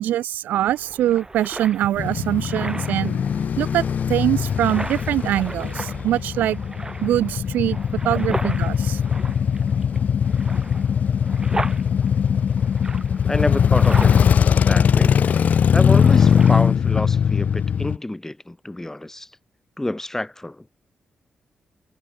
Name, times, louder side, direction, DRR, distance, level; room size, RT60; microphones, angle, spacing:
voice 1, 0.0-3.8 4.1-6.6 7.0-7.8 8.0-9.0, right 12 dB, 85° right, 0.8 m, -23 dB
sound 1, 0.6-16.7, right 2 dB, 25° right, 1.9 m, -36 dB
Male speech man speaking / Motorcycle / Idling, 2.0-18.0, left 7 dB, 65° left, 1.3 m, -20 dB
voice 2, 13.3-14.2 14.7-15.2 15.7-19.3 19.8-20.7, left 1 dB, 15° left, 7.2 m, -28 dB
supercardioid pair, 55°, 3 cm